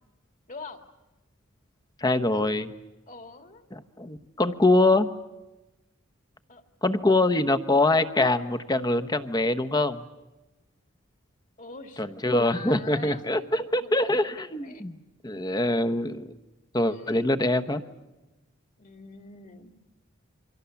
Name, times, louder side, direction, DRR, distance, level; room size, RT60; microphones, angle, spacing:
voice 1, 0.5-0.8 2.3-2.6 3.1-3.6 4.5-4.9 6.5-6.6 11.6-12.1 12.4-14.9 16.8-17.8 18.8-19.7, left 3 dB, 40° left, 7 dB, 2.2 m, -45 dB
voice 2, 2.0-2.7 3.7-5.1 6.8-10.0 12.0-15.0 15.2-16.3 16.7-17.8, left 2 dB, 20° left, 10 dB, 1.0 m, -24 dB
28.5 x 24.5 x 7.1 m, 1.0 s
head